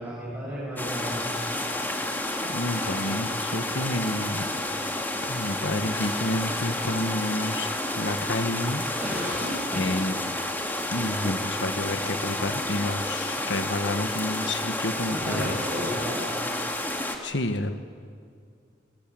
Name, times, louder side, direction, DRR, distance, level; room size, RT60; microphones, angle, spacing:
voice 1, 0.0-1.6 9.0-9.9 15.1-16.2, equal, 10° right, -6 dB, 7.7 m, -33 dB
sound 1, 0.8-17.2, left 1 dB, 10° left, 2.6 m, -30 dB
voice 2, 2.5-4.5 5.2-7.7 7.9-8.8 9.7-10.1 10.9-15.5 17.2-17.7, left 1 dB, 85° left, 8 dB, 1.6 m, -29 dB
28.5 x 26.5 x 7.8 m, 2.2 s
head